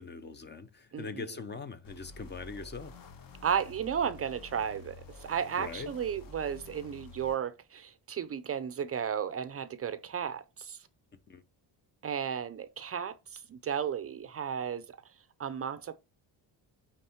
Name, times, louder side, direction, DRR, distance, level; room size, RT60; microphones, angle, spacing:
voice 1, 0.0-3.0 5.6-5.9 11.3-11.4, left 4 dB, 25° left, 0.5 m, -42 dB
voice 2, 0.9-1.3 3.4-10.8 12.0-14.8 15.4-15.9, right 8 dB, 35° right, 0.5 m, -34 dB
sound 1, 1.8-7.4, left 2 dB, 55° left, 1.2 m, -50 dB
9.0 x 3.5 x 4.3 m
cardioid pair, 180°, 42 cm